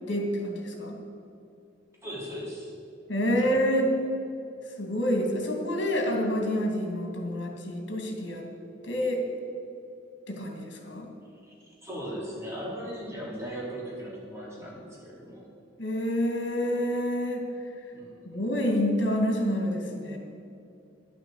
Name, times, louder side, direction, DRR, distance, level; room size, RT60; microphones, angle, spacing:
voice 1, 0.1-1.0 3.1-3.9 4.8-8.4 8.8-9.2 10.3-11.1 15.8-17.4 18.2-20.2, equal, 60° left, 2 dB, 2.6 m, -28 dB
voice 2, 2.0-2.7 3.4-3.6 11.5-11.6 11.8-15.5 17.9-18.1, equal, 15° right, -6 dB, 3.7 m, -38 dB
11.0 x 9.0 x 8.1 m, 2.6 s
head